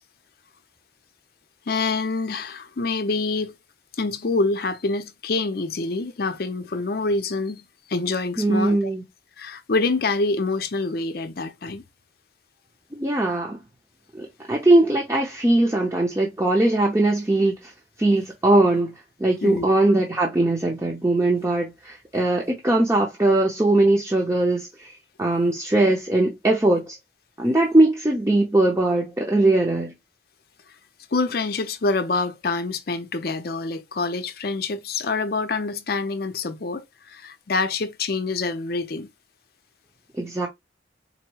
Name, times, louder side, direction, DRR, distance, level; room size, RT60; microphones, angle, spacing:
voice 1, 1.7-3.6 4.0-8.8 9.4-11.8 19.4-19.7 31.1-39.1, left 3 dB, 55° left, 0.6 m, -26 dB
voice 2, 8.4-9.0 12.9-13.6 14.1-17.7 18.0-18.9 19.2-24.9 25.2-27.0 27.4-29.9 40.2-40.5, right 2 dB, 15° right, 0.6 m, -20 dB
4.0 x 2.1 x 4.5 m
head